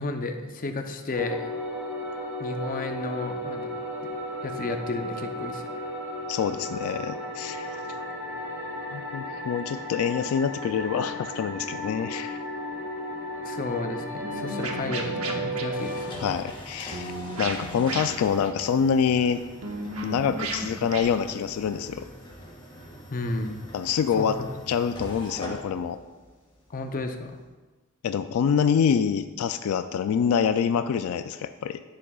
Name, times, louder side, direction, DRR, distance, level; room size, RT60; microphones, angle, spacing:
voice 1, 0.0-1.5 2.4-3.7 4.0-4.1 4.4-5.6 13.4-16.4 23.1-23.5 24.2-24.5 26.7-27.4, left 2 dB, 40° left, 6 dB, 0.6 m, -32 dB
sound 1, 1.1-16.1, equal, 10° right, 2.3 m, -34 dB
voice 2, 6.3-7.8 8.9-12.4 16.2-19.4 20.0-22.0 23.7-24.4 24.7-26.0 28.0-31.8, left 7 dB, 85° left, 10 dB, 0.3 m, -26 dB
sound 2, 14.2-15.7 16.9-18.5 19.6-21.0, right 2 dB, 90° right, 0.9 m, -34 dB
sound 3, 15.7-27.4, equal, 25° left, 1.7 m, -43 dB
10.0 x 7.4 x 2.3 m, 1.3 s
head